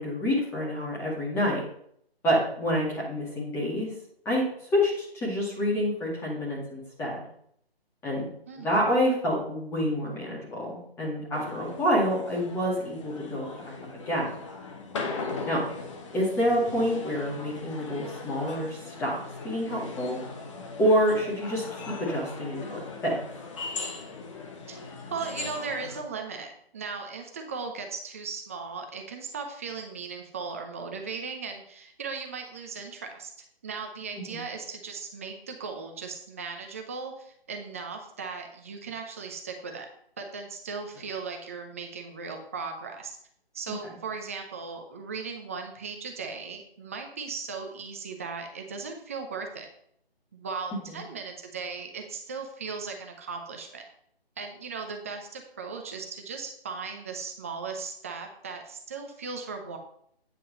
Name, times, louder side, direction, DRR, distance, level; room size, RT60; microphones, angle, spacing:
voice 1, 0.0-1.6 2.2-3.9 4.3-4.4 4.7-7.2 8.0-8.3 8.6-13.7 14.1-14.3 15.5-15.6 16.1-19.2 19.4-20.2 20.8-23.2 34.2-34.4 43.7-43.8 50.9-51.0, equal, 10° left, -5 dB, 2.1 m, -27 dB
voice 2, 8.5-8.8 24.7-33.3 33.6-39.9 40.2-43.2 43.5-49.7 50.3-53.8 54.4-59.8, right 5 dB, 15° right, 3 dB, 0.6 m, -37 dB
sound 1, 11.3-26.0, left 4 dB, 30° left, 1.2 m, -39 dB
9.1 x 5.4 x 5.3 m, 0.67 s
figure-of-eight pair, 150°, 31 cm